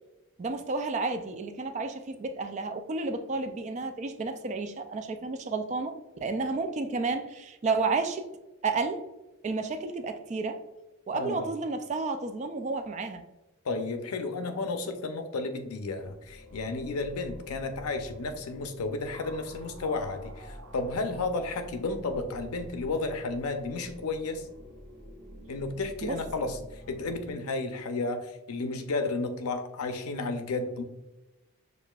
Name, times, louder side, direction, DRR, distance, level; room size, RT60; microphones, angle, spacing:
voice 1, 0.4-6.0 6.2-8.3 8.6-9.0 9.4-10.6 11.1-13.2 26.0-26.2, right 3 dB, 30° right, 7 dB, 0.3 m, -31 dB
voice 2, 11.1-11.5 13.6-24.5 25.5-30.8, left 3 dB, 85° left, 7 dB, 0.5 m, -32 dB
sound 1, 15.8-27.3, equal, 85° right, 0.7 m, -47 dB
6.4 x 2.5 x 2.3 m, 1.0 s
head